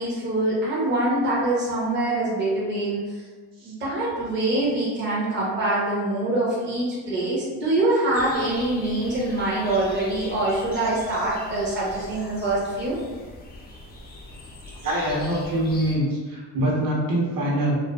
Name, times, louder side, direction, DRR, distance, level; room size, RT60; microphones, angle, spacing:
voice 1, 0.0-3.2 3.6-13.0, right 2 dB, 30° right, -6 dB, 0.6 m, -24 dB
sound 1, 8.1-16.0, left 2 dB, 25° left, 0.4 m, -42 dB
voice 2, 14.8-17.8, right 1 dB, 55° right, -5 dB, 0.9 m, -24 dB
2.5 x 2.4 x 2.2 m, 1.4 s
cardioid pair, 100°, 40 cm